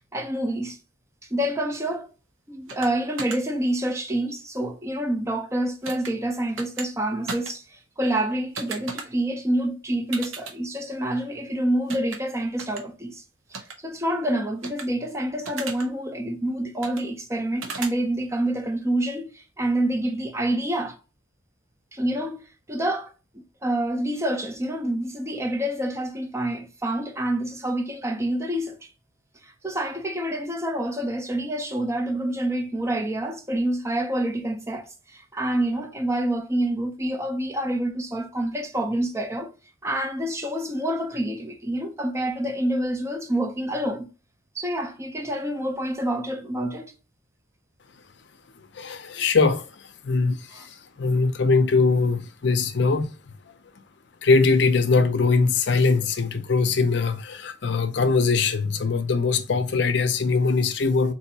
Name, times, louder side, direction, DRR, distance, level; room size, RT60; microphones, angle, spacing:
voice 1, 0.1-0.8 1.3-2.1 2.5-13.2 13.8-21.0 21.9-28.9 29.4-39.5 39.8-44.1 44.5-46.9 50.5-50.7, right 1 dB, 15° right, 0.4 m, -27 dB
sound 1, 2.7-2.9 3.2-3.4 5.8-6.1 6.6-6.9 7.3-7.5 8.6-9.0 10.1-10.5 11.9-12.2 12.6-12.8 13.5-13.7 14.6-14.8 15.4-15.8 16.8-17.0 17.6-17.9, right 4 dB, 85° right, 0.7 m, -34 dB
voice 2, 48.7-53.5 54.2-61.1, left 4 dB, 60° left, 0.5 m, -22 dB
4.0 x 2.6 x 2.7 m
head